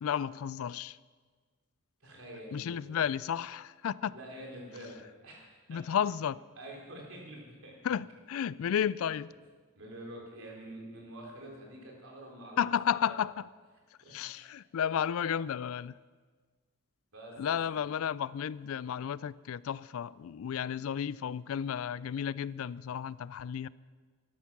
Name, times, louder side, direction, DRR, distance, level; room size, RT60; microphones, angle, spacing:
voice 1, 0.0-1.0 2.5-4.1 5.7-6.4 7.8-9.3 12.6-13.3 14.1-16.0 17.4-23.7, left 8 dB, 75° left, 0.3 m, -32 dB
voice 2, 2.0-3.0 4.1-5.8 6.6-7.9 9.8-13.2 14.0-14.4 17.1-17.8, right 1 dB, 65° right, 3.8 m, -47 dB
13.0 x 11.5 x 6.0 m
head